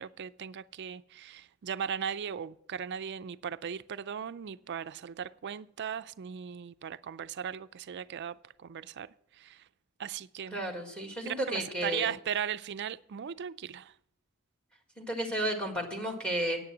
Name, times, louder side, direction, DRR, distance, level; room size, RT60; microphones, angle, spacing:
voice 1, 0.0-9.6 10.0-10.6 11.3-13.9, right 8 dB, 50° right, 0.4 m, -38 dB
voice 2, 10.5-12.1 15.0-16.6, right 1 dB, 5° left, 1.8 m, -33 dB
9.6 x 8.8 x 6.1 m
head